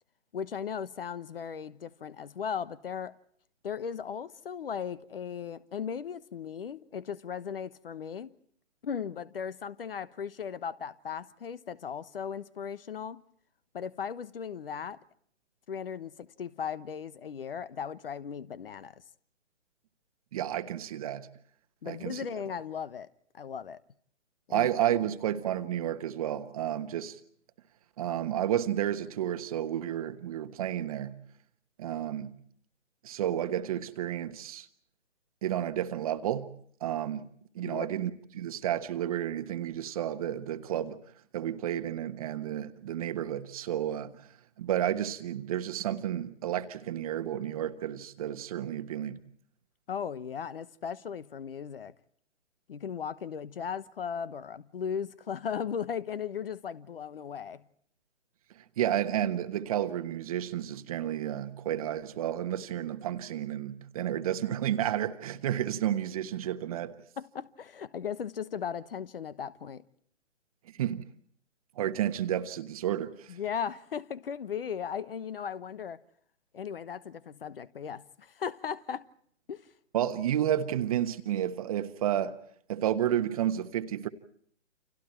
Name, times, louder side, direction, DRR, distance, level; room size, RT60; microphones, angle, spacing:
voice 1, 0.3-3.1 3.6-8.3 8.8-13.2 13.7-15.0 15.7-18.9 21.8-23.1 23.3-23.8 24.5-24.7 37.7-37.9 49.9-51.9 52.7-57.6 67.2-69.8 73.3-76.0 76.5-79.1 79.5-79.7, left 7 dB, 50° left, 1.2 m, -37 dB
voice 2, 20.3-21.3 21.8-22.2 24.5-27.2 28.0-31.2 31.8-32.3 33.0-34.7 35.4-36.5 36.8-37.3 37.5-41.0 41.3-44.1 44.6-49.2 58.8-66.9 70.7-71.0 71.8-73.4 79.9-82.4 82.7-84.1, right 11 dB, 30° right, 1.3 m, -31 dB
29.5 x 27.5 x 4.5 m
figure-of-eight pair, 145°, 37 cm